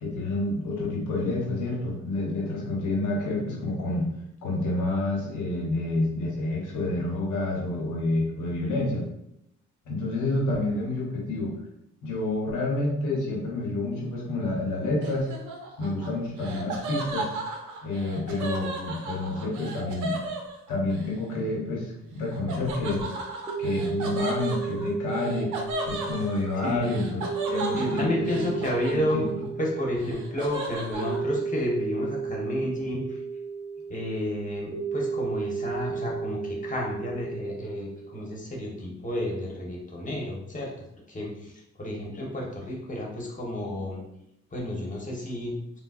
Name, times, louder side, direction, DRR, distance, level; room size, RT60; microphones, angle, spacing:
voice 1, 0.0-4.1 4.4-9.0 9.8-11.6 12.0-15.3 15.8-17.3 17.8-20.2 20.7-23.1 23.6-25.5 25.8-27.2 27.5-28.1 28.4-28.5 28.9-29.2, left 2 dB, 85° left, -2 dB, 1.0 m, -28 dB
Laughter, 15.0-21.1 22.5-29.5 29.8-31.2, right 2 dB, 90° right, 0.6 m, -35 dB
sound 1, 22.9-38.3, right 5 dB, 15° right, 0.9 m, -33 dB
voice 2, 26.6-27.1 27.7-29.3 29.6-33.2 33.9-41.5 41.8-44.0 44.5-45.6, left 1 dB, 25° left, -2 dB, 1.1 m, -31 dB
3.8 x 2.2 x 2.4 m, 0.78 s
cardioid pair, 75°, 29 cm